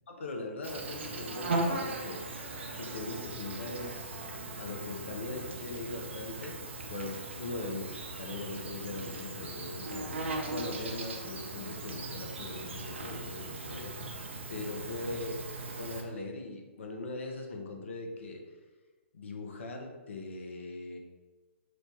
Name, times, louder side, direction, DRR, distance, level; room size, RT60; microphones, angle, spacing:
voice 1, 0.1-2.2 2.8-4.2 4.6-6.6 6.9-14.2 14.5-15.3 15.6-18.4 19.1-21.0, left 2 dB, 75° left, 2 dB, 0.7 m, -40 dB
Insect, 0.6-16.0, right 2 dB, 70° right, 0.6 m, -38 dB
3.1 x 2.2 x 4.0 m, 1.2 s
hypercardioid pair, 125°, 7 cm